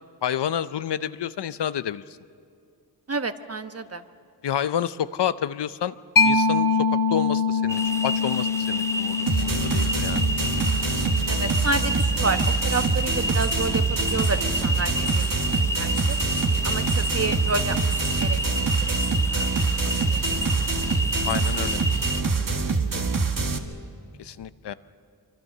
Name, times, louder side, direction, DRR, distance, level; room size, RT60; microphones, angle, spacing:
voice 1, 0.2-2.0 4.4-5.9 6.2-10.3 21.3-21.8 22.2-22.7 24.2-24.7, left 9 dB, 85° left, 14 dB, 0.7 m, -29 dB
voice 2, 3.1-4.0 11.3-16.2 16.6-17.8 18.1-18.4 18.9-19.0 19.3-19.5 20.1-20.2 23.2-23.3, right 3 dB, 35° right, 9 dB, 1.2 m, -30 dB
Mallet percussion, 6.2-13.4, left 4 dB, 55° left, 1.6 m, -26 dB
sound 1, 7.7-22.2, left 1 dB, 5° left, 0.8 m, -30 dB
sound 2, 9.3-23.6, right 4 dB, 55° right, 1.7 m, -25 dB
24.5 x 24.5 x 6.7 m, 2.3 s
cardioid pair, 55°, 40 cm